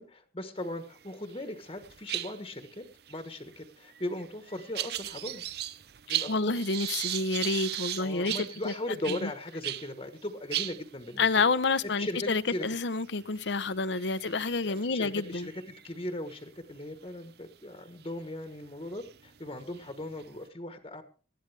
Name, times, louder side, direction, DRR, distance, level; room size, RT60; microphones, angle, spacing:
voice 1, 0.0-5.4 6.1-6.6 8.0-11.5 11.8-12.6 14.6-21.0, left 1 dB, 30° left, 1.3 m, -38 dB
sound 1, 1.0-1.4 1.7-9.9 10.2-10.3 10.5-16.3 16.9-17.2 18.0-18.1 18.7-20.4, right 13 dB, 60° right, 0.6 m, -38 dB
voice 2, 6.3-8.7 9.2-9.3 11.2-15.5, left 4 dB, 75° left, 0.8 m, -29 dB
19.0 x 12.5 x 3.4 m
head